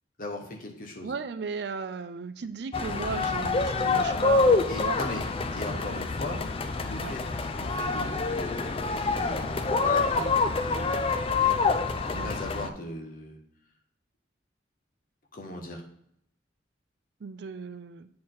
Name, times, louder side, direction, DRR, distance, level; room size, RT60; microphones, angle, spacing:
voice 1, 0.2-1.1 4.7-5.2 5.6-6.4 6.8-7.2 7.5-11.5 12.0-13.4 15.3-15.8, left 2 dB, 50° left, 1 dB, 1.3 m, -38 dB
voice 2, 1.0-5.0 7.0-7.1 12.1-12.3 17.2-18.1, right 5 dB, 60° right, 11 dB, 0.4 m, -36 dB
sound 1, 2.7-12.7, left 4 dB, 30° left, 0.4 m, -26 dB
8.6 x 4.3 x 3.9 m, 0.70 s
head